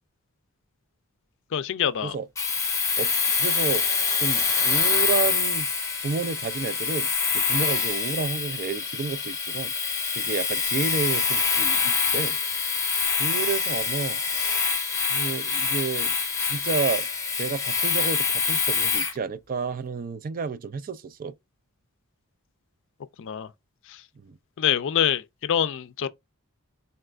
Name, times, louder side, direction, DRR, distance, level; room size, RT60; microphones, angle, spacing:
voice 1, 1.5-2.2 23.2-23.5 23.9-24.0 24.6-26.1, left 9 dB, 60° left, 0.4 m, -25 dB
Domestic sounds home sounds, 2.4-19.2, left 5 dB, 15° left, 0.9 m, -25 dB
voice 2, 3.0-3.8 4.2-5.7 6.0-7.1 7.3-9.7 10.1-12.4 13.1-14.7 15.1-17.1 17.4-21.3 24.2-24.4, right 5 dB, 40° right, 0.4 m, -31 dB
4.1 x 3.3 x 2.4 m
head